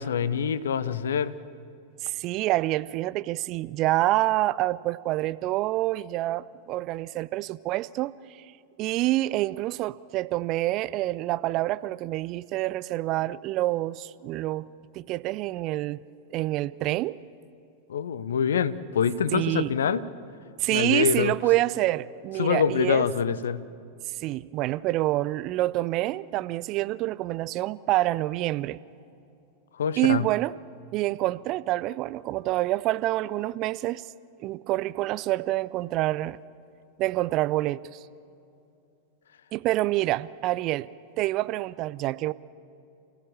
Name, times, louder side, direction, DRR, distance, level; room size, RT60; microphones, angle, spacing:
voice 1, 0.0-1.3 17.9-20.0 20.7-21.3 22.4-23.6 29.8-30.2, left 7 dB, 65° left, 16 dB, 0.8 m, -25 dB
voice 2, 2.0-8.2 8.8-14.7 14.9-16.0 16.3-17.2 19.3-19.7 20.6-23.1 24.2-28.8 30.0-30.5 30.9-34.1 34.4-36.4 37.0-38.0 39.5-40.9 41.2-42.3, right 17 dB, 40° right, 17 dB, 0.5 m, -27 dB
28.5 x 16.5 x 7.3 m, 2.7 s
figure-of-eight pair, 90°, 0 cm